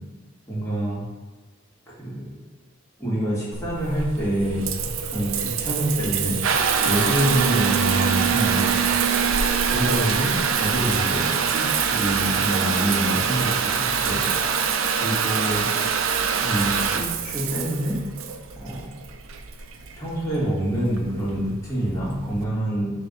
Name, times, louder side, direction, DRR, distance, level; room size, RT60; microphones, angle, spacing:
voice 1, 0.5-1.0 1.9-2.3 3.0-4.6 5.1-6.4 6.8-8.8 9.7-13.7 14.0-14.2 15.0-15.7 16.4-18.0 18.6-18.9 20.0-22.9, right 1 dB, 15° left, -8 dB, 2.1 m, -26 dB
Water tap faucet / Bathtub (filling or washing) / Trickle dribble, 3.5-22.4, right 6 dB, 85° right, 0.6 m, -24 dB
6.6 x 3.5 x 5.4 m, 1.3 s
head